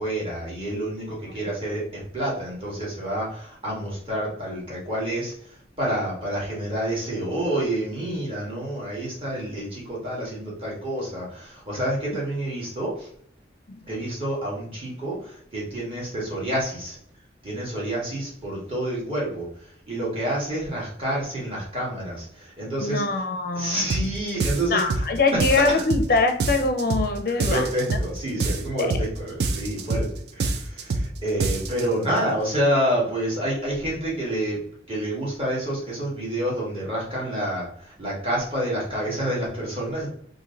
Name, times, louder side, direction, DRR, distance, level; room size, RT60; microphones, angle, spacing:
voice 1, 0.0-13.1 13.9-17.0 17.4-23.0 23.5-25.0 25.3-25.8 27.3-30.1 30.4-34.6 34.9-40.1, right 1 dB, 30° right, -5 dB, 1.5 m, -28 dB
voice 2, 22.8-23.9 24.7-28.0 28.8-28.9, left 3 dB, 50° left, 5 dB, 0.4 m, -23 dB
sound 1, 23.9-24.1 24.4-25.1 25.4-26.1 26.4-27.1 27.4-28.1 28.4-29.1 29.4-30.1 30.4-31.1 31.4-31.8, right 3 dB, 65° right, 0.4 m, -25 dB
3.2 x 2.5 x 3.7 m, 0.64 s
head